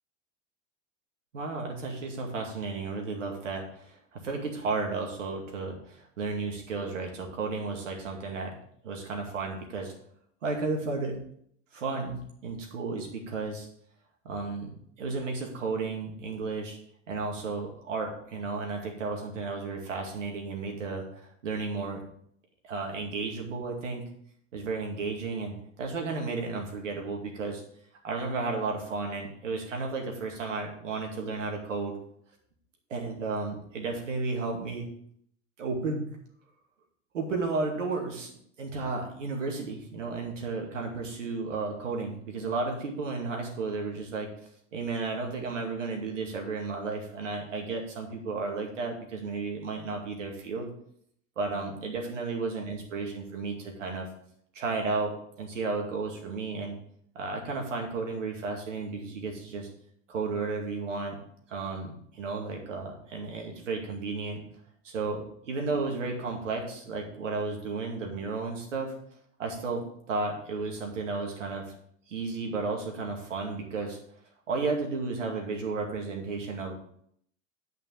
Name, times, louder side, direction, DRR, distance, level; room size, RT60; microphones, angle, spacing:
voice 1, 1.3-8.5 8.8-9.9 10.4-11.2 11.7-13.7 14.2-16.8 17.1-22.0 22.6-24.0 24.5-27.6 28.0-32.0 32.9-34.9 35.6-36.1 37.1-44.3 44.7-50.7 51.4-54.1 54.5-55.1 55.4-56.8 57.2-59.7 60.1-61.2 61.5-64.4 64.8-68.9 69.4-71.7 72.1-74.0 74.5-76.7, right 4 dB, 80° right, 1 dB, 2.3 m, -33 dB
9.3 x 5.3 x 5.1 m, 0.67 s
hypercardioid pair, 90°, 37 cm